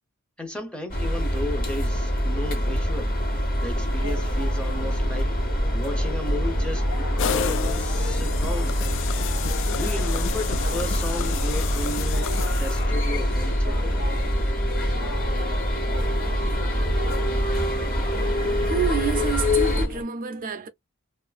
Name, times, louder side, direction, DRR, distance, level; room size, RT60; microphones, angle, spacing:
voice 1, 0.4-3.1 3.6-5.3 5.7-8.9 9.7-13.9, left 1 dB, 5° left, 0.6 m, -34 dB
sound 1, 0.9-19.9, equal, 45° left, 1.2 m, -25 dB
sound 2, 3.9-20.0, left 1 dB, 85° left, 1.0 m, -35 dB
sound 3, 7.2-13.2, left 7 dB, 60° left, 0.3 m, -31 dB
voice 2, 18.6-20.7, right 6 dB, 40° right, 0.4 m, -28 dB
2.5 x 2.4 x 2.3 m
head